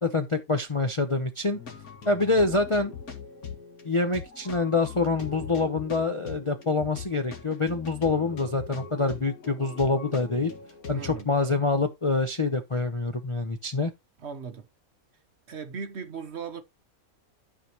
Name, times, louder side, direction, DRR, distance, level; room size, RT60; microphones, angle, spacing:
voice 1, 0.0-1.6 2.1-2.9 3.8-10.5 10.9-13.9, left 3 dB, 35° left, 0.5 m, -26 dB
sound 1, 1.5-11.2, left 6 dB, 80° left, 2.4 m, -41 dB
voice 2, 10.9-11.3 14.2-14.7 15.5-16.6, right 6 dB, 55° right, 1.1 m, -37 dB
12.5 x 5.7 x 2.9 m
omnidirectional pair, 1.5 m